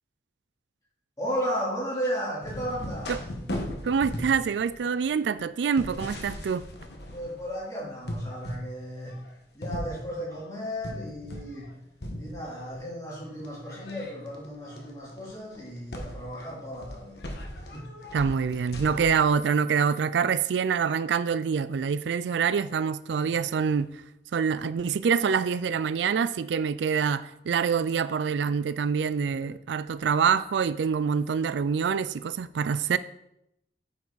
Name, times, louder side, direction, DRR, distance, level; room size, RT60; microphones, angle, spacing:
voice 1, 1.2-3.2 7.1-11.8 12.2-17.2 17.5-18.1 29.2-29.5, equal, 20° left, 3.3 m, -35 dB
sound 1, 2.4-7.6 8.0-8.7 9.1-11.7 12.0-12.8 13.4-19.3, left 1 dB, 70° left, 1.4 m, -38 dB
voice 2, 3.8-6.7 18.1-23.9 24.3-33.0, right 6 dB, 85° right, 0.4 m, -26 dB
8.4 x 6.0 x 4.0 m
head